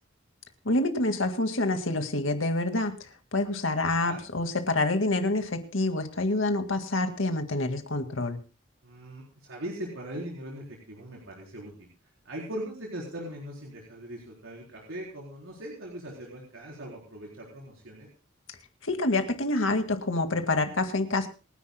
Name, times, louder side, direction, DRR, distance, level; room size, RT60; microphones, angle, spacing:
voice 1, 0.7-2.9 3.3-8.4 18.8-21.3, left 2 dB, 80° left, 6 dB, 2.0 m, -27 dB
voice 2, 8.8-11.9 12.2-18.1, right 1 dB, 85° right, -3 dB, 4.0 m, -40 dB
28.0 x 10.5 x 2.2 m, 0.33 s
head